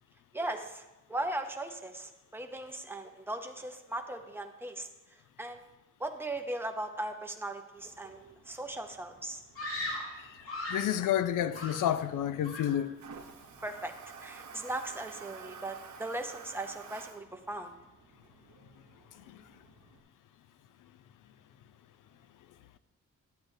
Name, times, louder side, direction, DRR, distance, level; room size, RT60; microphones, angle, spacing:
voice 1, 0.3-5.6 6.0-9.4 13.6-13.9 14.2-17.7, right 1 dB, 5° right, 0.6 m, -38 dB
Toilet flush, 7.8-20.0, right 5 dB, 65° right, 0.8 m, -52 dB
Screaming, 9.5-11.0 11.5-12.2 12.4-12.9, left 1 dB, 45° left, 1.9 m, -38 dB
voice 2, 10.6-12.9 19.3-19.4, left 11 dB, 80° left, 0.5 m, -30 dB
10.5 x 8.0 x 2.7 m
wide cardioid pair, 140°, 31 cm